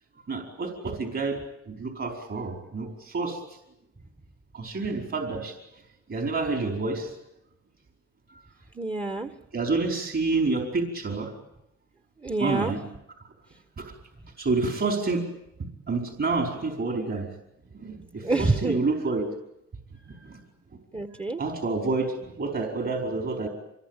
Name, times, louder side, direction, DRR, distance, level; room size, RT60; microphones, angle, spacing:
voice 1, 0.3-1.4 1.7-3.4 4.5-5.5 6.1-7.1 9.5-11.3 12.4-12.8 13.8-13.9 14.4-15.2 15.9-17.3 17.7-19.3 20.1-20.4 21.4-23.5, right 3 dB, 40° right, 2 dB, 4.8 m, -28 dB
voice 2, 8.7-9.3 12.2-12.7 18.2-18.9 20.9-21.4, right 2 dB, 15° right, 8 dB, 1.6 m, -27 dB
25.5 x 22.0 x 9.2 m, 0.83 s
cardioid pair, 90°, 30 cm